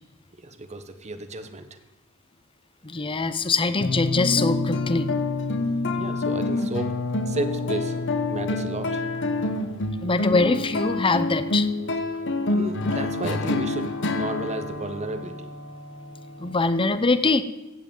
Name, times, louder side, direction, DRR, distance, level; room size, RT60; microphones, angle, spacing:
voice 1, 0.4-1.8 5.9-7.0 7.3-8.0 8.3-9.0 12.5-15.5, right 2 dB, 30° right, 8 dB, 1.1 m, -33 dB
voice 2, 2.8-5.1 10.0-11.7 16.4-17.4, left 3 dB, 25° left, 12 dB, 0.7 m, -23 dB
sound 1, 3.8-16.5, left 2 dB, 55° left, 1.1 m, -27 dB
16.0 x 5.9 x 8.8 m, 1.1 s
head